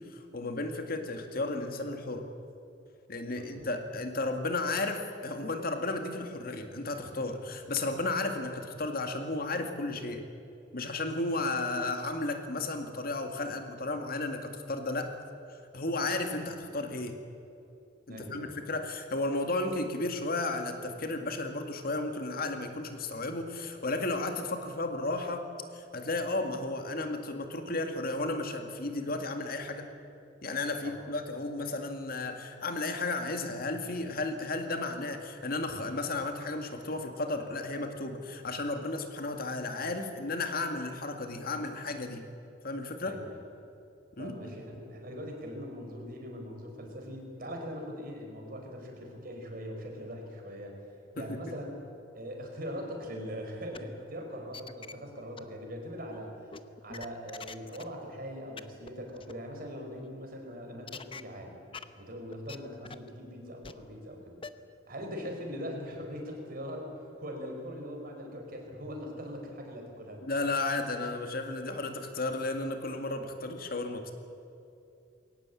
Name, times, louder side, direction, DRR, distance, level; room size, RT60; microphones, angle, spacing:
voice 1, 0.1-2.3 3.1-10.2 10.7-15.1 15.5-17.2 18.1-25.4 25.7-29.9 30.4-42.2 42.6-43.2 44.2-44.5 51.2-51.4 70.2-74.1, left 2 dB, 55° left, 5 dB, 2.2 m, -33 dB
voice 2, 3.4-3.7 18.1-18.6 30.8-31.0 43.0-43.5 44.2-50.7 51.1-51.8 52.1-61.6 62.0-64.4 64.9-70.2, equal, 50° right, 2 dB, 4.9 m, -41 dB
sound 1, 53.7-53.8 54.3-54.9 55.4-55.5 56.5-57.8 58.1-58.2 58.6-58.7 58.9-59.0 59.1-59.3 60.9-61.2 61.7-61.8 62.3-62.6 62.8-63.1 63.6-63.7 64.4-64.5, left 5 dB, 30° left, 0.8 m, -43 dB
21.5 x 18.5 x 8.6 m, 2.7 s
head